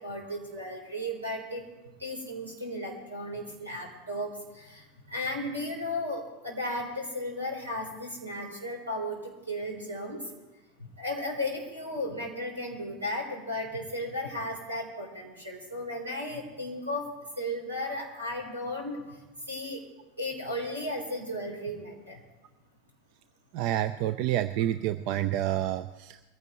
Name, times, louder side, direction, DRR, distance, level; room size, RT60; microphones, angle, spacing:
voice 1, 0.0-1.7 2.0-10.3 10.8-19.8 20.2-22.2, left 1 dB, 85° right, 0 dB, 3.6 m, -35 dB
voice 2, 23.5-26.2, right 13 dB, 50° right, 12 dB, 0.5 m, -28 dB
22.5 x 15.5 x 3.1 m, 1.1 s
figure-of-eight pair, 85°, 0 cm